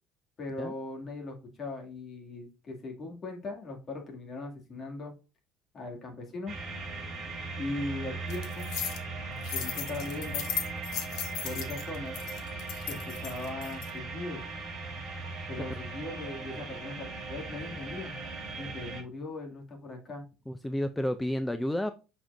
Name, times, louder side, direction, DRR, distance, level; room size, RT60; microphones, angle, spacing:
voice 1, 0.4-5.2 5.7-6.5 7.6-8.7 9.5-10.5 11.4-12.2 12.9-14.4 15.5-18.1 18.6-20.2, left 2 dB, 30° left, 2.3 m, -39 dB
sound 1, 6.5-19.0, right 3 dB, 30° right, 3.0 m, -38 dB
sound 2, 8.3-9.0 9.4-13.9, left 9 dB, 65° left, 1.5 m, -36 dB
voice 2, 20.5-21.9, left 1 dB, 5° left, 0.4 m, -31 dB
7.2 x 5.9 x 2.6 m
cardioid pair, 145°, 0 cm